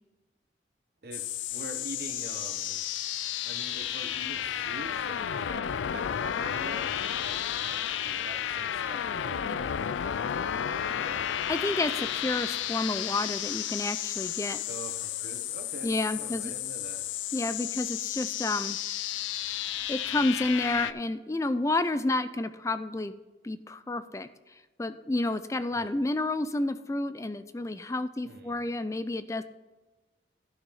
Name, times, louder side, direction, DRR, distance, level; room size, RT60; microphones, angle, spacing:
sound 1, 1.1-20.9, left 10 dB, 90° left, 0.4 m, -32 dB
voice 1, 1.5-2.8 3.4-9.8 10.6-11.3 14.7-17.0 25.7-25.9 28.2-28.6, right 2 dB, 55° right, 6 dB, 1.1 m, -45 dB
voice 2, 11.5-14.6 15.8-16.5 17.3-18.8 19.9-23.1 23.4-24.3 24.8-29.4, left 2 dB, 15° left, 12 dB, 0.4 m, -30 dB
12.0 x 6.3 x 4.1 m, 1.1 s
head